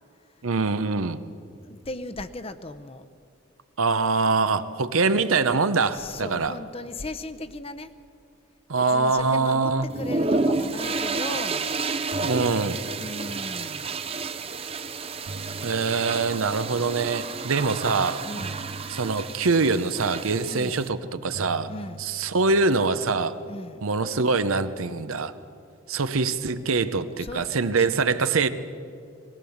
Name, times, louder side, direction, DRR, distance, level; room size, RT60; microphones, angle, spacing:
voice 1, 0.4-1.2 3.8-6.5 8.7-9.9 12.2-12.8 15.6-18.2 18.9-21.7 22.0-23.3 23.8-25.3 25.9-28.5, right 4 dB, 90° right, 12 dB, 0.8 m, -24 dB
voice 2, 1.6-3.1 5.8-7.9 8.7-11.7 13.0-14.2 18.2-18.7 20.5-20.8 21.7-22.0 23.5-23.9 27.2-27.9, left 2 dB, 30° left, 11 dB, 0.7 m, -37 dB
sound 1, 9.9-20.9, right 3 dB, 30° right, 0.6 m, -30 dB
sound 2, 11.6-11.7 11.9-14.3 15.0-17.4 18.4-20.8 21.3-23.9, right 2 dB, 60° right, 0.8 m, -44 dB
21.0 x 18.5 x 7.2 m, 2.4 s
head